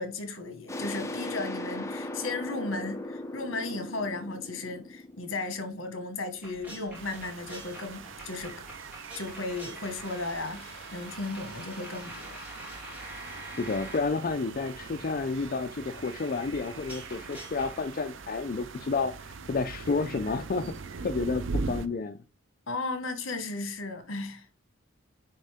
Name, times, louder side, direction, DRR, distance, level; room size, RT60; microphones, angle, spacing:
voice 1, 0.0-8.5 9.1-12.4 22.7-24.4, left 3 dB, 65° left, 1.5 m, -35 dB
sound 1, 0.7-6.2, left 2 dB, 15° left, 0.7 m, -38 dB
sound 2, 6.4-17.8, right 1 dB, 10° right, 2.1 m, -46 dB
sound 3, 6.9-21.9, right 4 dB, 60° right, 0.6 m, -41 dB
voice 2, 13.6-20.7 21.0-22.2, left 4 dB, 40° left, 0.4 m, -30 dB
9.6 x 3.6 x 3.5 m
head